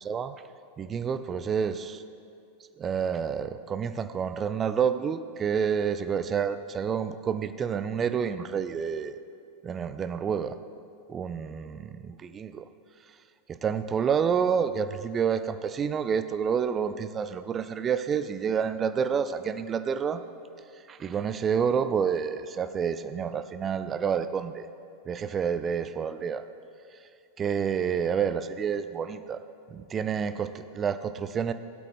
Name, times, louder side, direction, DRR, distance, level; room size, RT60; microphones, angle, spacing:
voice 1, 0.8-2.0 2.8-9.2 9.6-10.6 11.1-12.7 13.5-20.2 20.9-24.7 25.1-26.4 27.4-29.4 29.7-31.5, right 7 dB, 25° right, 11 dB, 0.5 m, -29 dB
20.0 x 8.3 x 3.5 m, 2.6 s
figure-of-eight pair, 90°, 0 cm